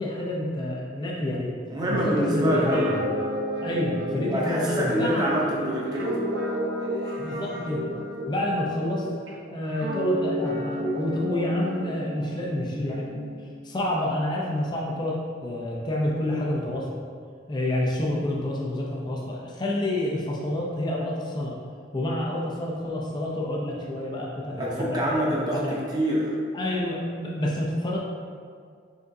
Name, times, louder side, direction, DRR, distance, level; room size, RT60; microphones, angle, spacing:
voice 1, 0.0-1.5 1.9-2.9 3.6-5.3 7.2-7.8 8.3-9.1 9.5-13.3 13.6-16.9 17.5-21.5 21.9-25.8 26.5-28.0, left 1 dB, 20° left, -3 dB, 0.4 m, -28 dB
voice 2, 1.7-2.9 4.3-6.2 7.0-7.2 24.6-26.3, equal, 20° right, -4 dB, 0.7 m, -26 dB
Guitar, 2.1-9.3 9.7-13.5, right 1 dB, 60° right, 0.6 m, -31 dB
5.2 x 3.6 x 2.6 m, 2.1 s
head